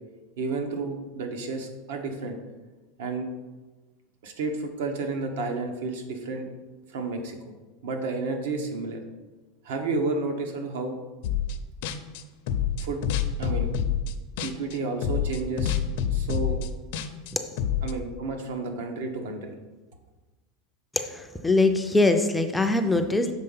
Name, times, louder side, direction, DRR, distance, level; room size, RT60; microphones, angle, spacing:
voice 1, 0.4-2.4 3.0-3.3 4.2-6.5 6.9-7.5 7.8-9.0 9.6-11.0 12.8-13.0 13.4-13.7 14.4-15.8 16.1-16.6 17.8-19.5, right 3 dB, 75° right, 5 dB, 1.2 m, -31 dB
sound 1, 11.2-11.6 11.8-14.8 15.0-17.9, left 8 dB, 60° left, 0.5 m, -27 dB
voice 2, 20.9-23.3, left 2 dB, 5° left, 5 dB, 0.3 m, -22 dB
6.6 x 4.0 x 5.5 m, 1.2 s
supercardioid pair, 170°, 0 cm